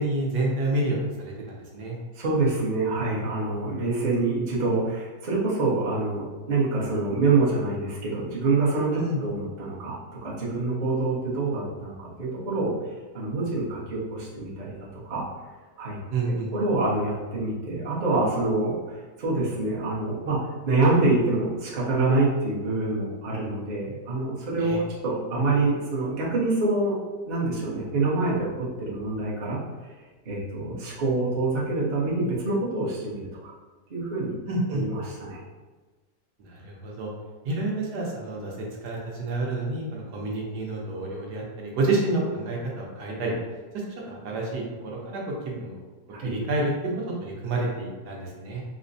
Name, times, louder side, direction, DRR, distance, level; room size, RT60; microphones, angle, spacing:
voice 1, 0.0-2.0 8.9-9.2 16.1-16.5 24.6-24.8 34.5-34.8 36.4-37.1 37.4-38.5 38.8-43.3 44.1-45.8 46.2-48.6, right 2 dB, 70° right, -2 dB, 1.2 m, -29 dB
voice 2, 2.1-14.7 15.0-15.3 15.8-16.0 16.5-27.0 27.3-28.5 28.8-29.9 30.2-33.5 33.9-34.3 34.7-35.4 46.1-46.3, right 3 dB, 40° right, -7 dB, 0.6 m, -26 dB
4.8 x 2.1 x 2.6 m, 1.3 s
omnidirectional pair, 1.9 m